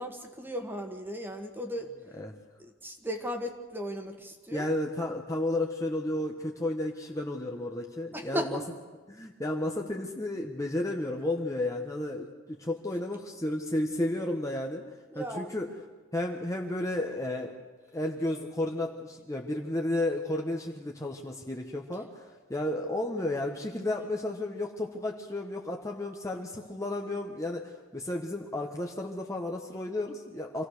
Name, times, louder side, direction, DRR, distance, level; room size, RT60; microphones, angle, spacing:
voice 1, 0.0-1.9 2.6-4.7 8.1-8.6 15.1-15.5, equal, 10° right, 4 dB, 1.7 m, -36 dB
voice 2, 4.5-8.6 9.1-14.8 15.1-15.7 16.1-17.6 17.9-30.7, left 1 dB, 15° left, 1 dB, 1.1 m, -32 dB
26.5 x 16.5 x 6.6 m, 1.4 s
head